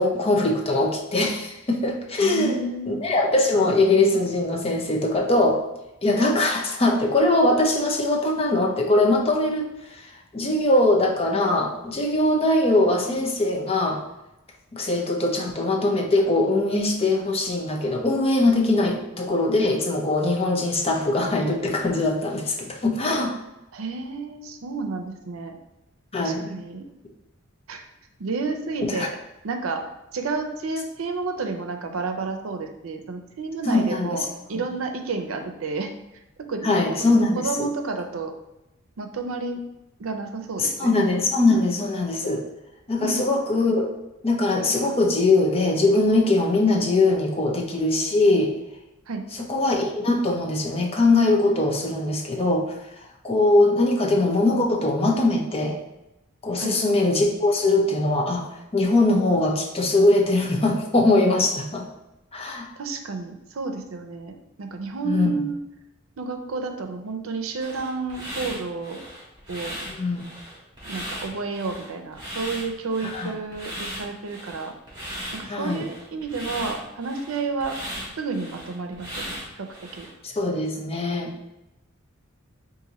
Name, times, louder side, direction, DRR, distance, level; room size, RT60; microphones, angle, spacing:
voice 1, 0.0-5.6 6.0-14.0 14.7-23.4 26.1-26.6 28.8-29.1 33.7-34.3 36.6-37.7 40.6-42.5 42.9-43.9 44.2-48.6 49.5-52.8 53.2-55.8 56.4-58.4 58.7-61.8 62.3-62.7 65.0-65.4 69.9-70.2 73.0-73.3 75.5-75.9 80.2-81.3, left 2 dB, 30° left, 1 dB, 0.6 m, -21 dB
voice 2, 2.2-3.0 23.7-25.5 26.2-26.9 27.7-27.9 28.2-29.1 29.4-29.8 30.1-35.9 36.4-36.8 37.3-38.3 39.0-39.6 40.0-40.9 43.0-43.2 49.1-49.3 56.6-56.7 62.8-65.6 66.2-69.0 69.5-69.8 70.8-74.7 75.3-77.8 78.2-79.7 79.9-80.1, right 4 dB, 90° right, 5 dB, 0.5 m, -31 dB
sound 1, 67.6-80.1, equal, 20° right, 1.3 m, -37 dB
4.1 x 2.6 x 3.9 m, 0.92 s
head